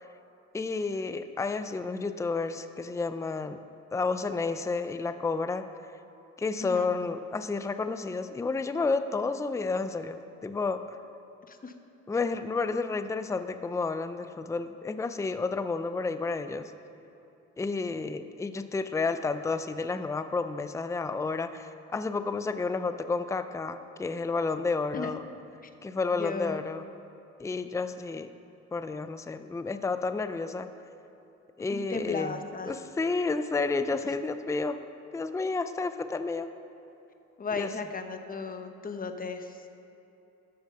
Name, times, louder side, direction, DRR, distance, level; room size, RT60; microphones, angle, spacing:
voice 1, 0.5-3.6 3.9-5.7 6.4-10.8 12.1-16.7 17.6-25.2 25.8-26.8 27.4-28.3 28.7-30.7 31.6-32.3 32.7-34.8 35.1-36.5 37.6-37.7, left 4 dB, 10° left, 10 dB, 0.4 m, -31 dB
voice 2, 6.6-6.9 11.5-11.7 24.9-25.1 25.6-25.7 26.1-26.6 31.7-32.8 34.0-34.1 37.4-39.7, left 4 dB, 30° left, 7 dB, 1.0 m, -36 dB
13.5 x 7.0 x 5.6 m, 2.9 s
cardioid pair, 90°, 30 cm